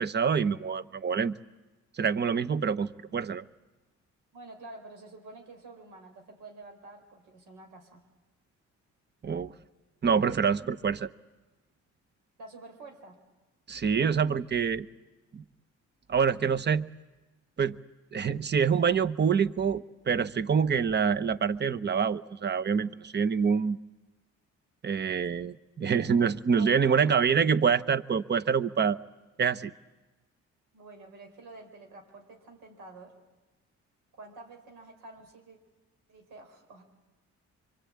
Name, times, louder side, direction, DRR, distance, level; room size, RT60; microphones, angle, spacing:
voice 1, 0.0-1.4 2.0-3.4 9.2-9.5 10.0-11.1 13.7-14.9 15.3-15.4 16.1-16.9 17.6-17.8 18.1-23.8 24.8-29.0 29.4-29.7, right 6 dB, 35° right, 14 dB, 0.9 m, -26 dB
voice 2, 4.3-8.0 12.4-13.2 26.6-27.2 30.7-33.1 34.1-35.6 36.1-36.8, right 2 dB, 90° right, 4 dB, 4.4 m, -48 dB
25.0 x 24.5 x 8.6 m, 1.2 s
cardioid pair, 90°, 30 cm